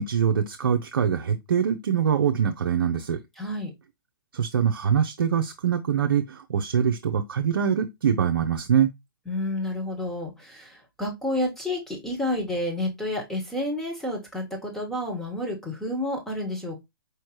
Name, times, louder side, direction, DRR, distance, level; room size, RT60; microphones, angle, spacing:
voice 1, 0.0-3.2 4.3-8.9, right 8 dB, 65° right, 0.6 m, -24 dB
voice 2, 3.4-3.7 9.3-16.8, left 1 dB, 5° left, 1.4 m, -30 dB
4.7 x 3.2 x 3.1 m
figure-of-eight pair, 130°, 12 cm